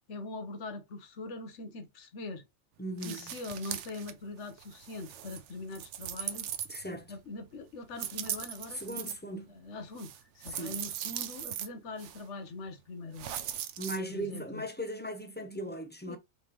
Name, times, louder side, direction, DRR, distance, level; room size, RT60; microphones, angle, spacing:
voice 1, 0.1-2.4 3.0-6.5 7.1-8.8 9.4-13.4 14.1-14.6 16.1-16.2, left 3 dB, 75° left, 1.2 m, -42 dB
voice 2, 2.8-3.3 6.7-7.1 8.7-9.5 10.5-10.8 13.8-16.2, right 1 dB, 15° left, 0.4 m, -38 dB
sound 1, 3.0-4.1 4.5-7.1 7.9-9.1 10.0-11.7 12.0-12.2 13.2-14.0, right 10 dB, 75° right, 0.9 m, -39 dB
4.0 x 3.4 x 2.9 m
omnidirectional pair, 1.2 m